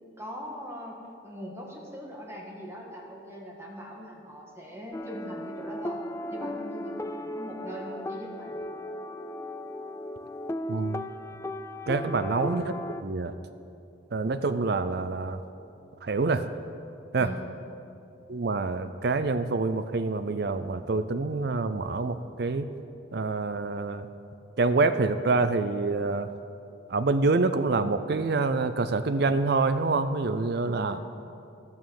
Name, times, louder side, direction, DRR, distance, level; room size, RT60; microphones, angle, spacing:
voice 1, 0.2-6.0 6.3-8.6 11.9-12.2 17.2-17.4 30.7-31.0, equal, 15° right, -2 dB, 1.7 m, -41 dB
sound 1, 4.9-13.0, left 1 dB, 15° left, 0.3 m, -36 dB
voice 2, 10.7-11.0 11.9-12.7 13.0-13.3 14.1-15.4 16.0-16.5 17.1-17.3 18.3-22.7 23.1-24.1 24.6-26.3 26.9-31.0, right 3 dB, 60° right, 11 dB, 0.5 m, -26 dB
13.0 x 9.0 x 7.1 m, 2.5 s
head